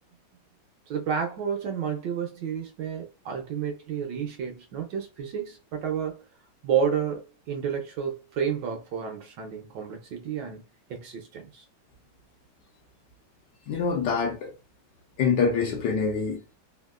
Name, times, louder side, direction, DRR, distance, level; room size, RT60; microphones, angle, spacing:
voice 1, 0.9-6.2 6.6-10.6 10.9-11.6, right 7 dB, 70° right, 1.2 m, -30 dB
voice 2, 13.7-14.5 15.2-16.5, left 5 dB, 70° left, 1.1 m, -25 dB
3.5 x 2.4 x 2.3 m
omnidirectional pair, 2.3 m